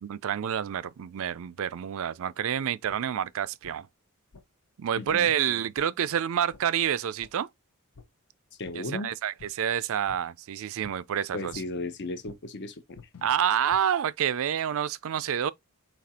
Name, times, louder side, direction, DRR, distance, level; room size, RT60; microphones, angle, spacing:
voice 1, 0.0-3.9 4.8-7.5 8.8-11.5 13.2-15.5, right 9 dB, 65° right, 0.4 m, -28 dB
sound 1, 2.9-3.0 3.6-3.7 4.3-4.4 5.1-5.2 5.8-5.9 6.5-6.6 7.2-7.3 7.9-8.1 8.6-8.8 9.4-9.5 10.1-10.2 10.8-10.9 11.5-11.6 12.3-12.4 12.9-13.8, left 4 dB, 85° left, 0.8 m, -49 dB
voice 2, 5.0-5.3 8.6-9.1 11.3-13.0, left 2 dB, 55° left, 0.7 m, -35 dB
4.2 x 2.8 x 4.2 m
head